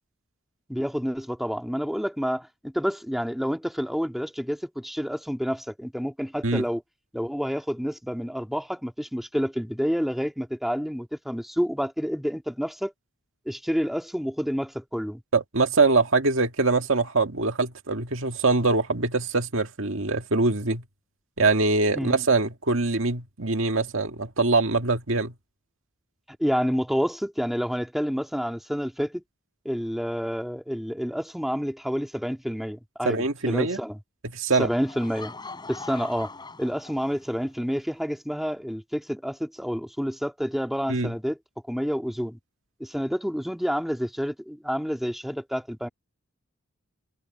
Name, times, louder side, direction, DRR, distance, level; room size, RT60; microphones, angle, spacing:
voice 1, 0.7-6.8 7.1-12.9 13.5-15.2 21.9-22.2 26.4-29.2 29.7-34.0 34.6-35.3 35.7-36.3 36.6-41.4 41.7-42.4 42.8-45.9, equal, ahead, 1.9 m, -29 dB
voice 2, 15.3-20.8 21.4-25.3 33.0-33.8 34.3-34.7 40.9-41.1, right 3 dB, 70° right, 1.9 m, -23 dB
Laughter / Crowd, 34.7-37.5, left 3 dB, 20° left, 7.0 m, -42 dB
head